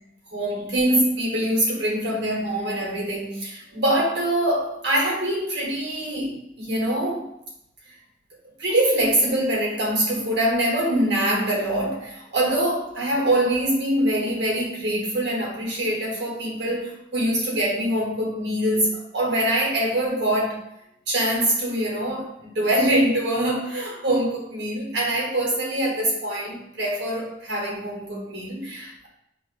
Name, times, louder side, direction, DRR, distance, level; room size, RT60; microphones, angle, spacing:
voice 1, 0.3-7.3 8.6-20.6 21.1-29.1, right 1 dB, 65° right, -1 dB, 0.9 m, -24 dB
5.5 x 2.1 x 2.4 m, 0.81 s
head